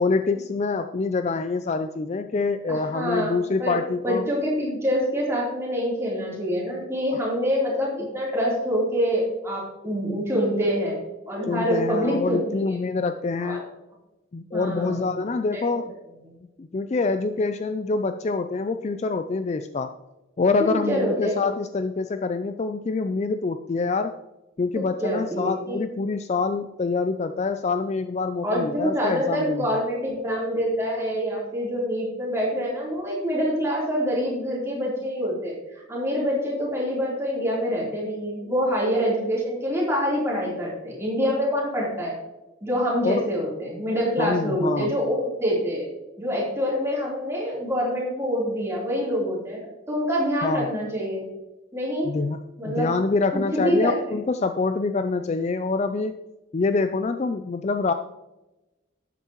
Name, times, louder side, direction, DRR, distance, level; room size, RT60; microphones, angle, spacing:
voice 1, 0.0-4.3 11.5-13.6 14.3-15.9 16.6-19.9 20.4-24.1 24.6-29.8 43.0-43.3 44.2-44.9 50.4-50.7 52.0-52.4 52.6-56.2 56.5-57.9, left 3 dB, 35° left, 9 dB, 0.3 m, -25 dB
voice 2, 2.7-3.3 3.6-12.7 13.4-13.6 14.5-15.1 15.5-15.6 20.6-21.4 25.0-25.8 28.4-42.2 42.6-45.9 46.2-51.2 51.7-52.1 52.6-52.9 53.3-54.0, equal, 15° right, -5 dB, 3.6 m, -26 dB
12.0 x 9.0 x 3.0 m, 1.0 s
head